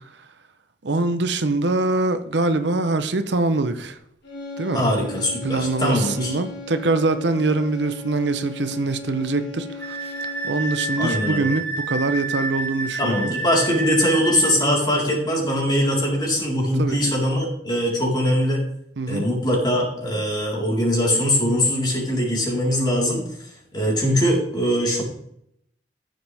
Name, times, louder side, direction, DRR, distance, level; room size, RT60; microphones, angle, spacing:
voice 1, 0.8-4.0 4.6-4.8 5.4-10.1 10.4-13.3 16.8-17.0 19.0-19.2, right 3 dB, 70° right, 0.8 m, -23 dB
sound 1, 4.2-11.4, left 3 dB, 70° left, 4.3 m, -37 dB
voice 2, 4.7-6.4 11.0-11.5 13.0-18.6 19.1-23.2 23.7-25.0, equal, 25° left, 4.1 m, -21 dB
Wind instrument woodwind instrument, 9.8-14.6, right 3 dB, 10° left, 4.9 m, -29 dB
15.0 x 7.6 x 3.5 m
head